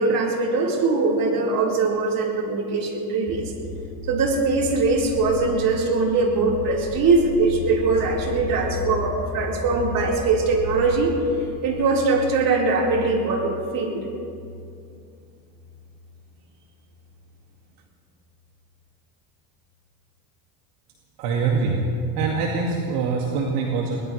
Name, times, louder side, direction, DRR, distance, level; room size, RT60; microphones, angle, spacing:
voice 1, 0.0-3.5 4.1-11.1 11.6-14.0, right 3 dB, 45° right, -2 dB, 4.2 m, -21 dB
sound 1, 3.3-16.3 16.6-17.2, left 4 dB, 45° left, 4.3 m, -35 dB
voice 2, 21.2-21.8 22.2-24.0, right 4 dB, 65° right, -1 dB, 2.2 m, -24 dB
22.5 x 19.5 x 3.3 m, 2.5 s
supercardioid pair, 100°, 47 cm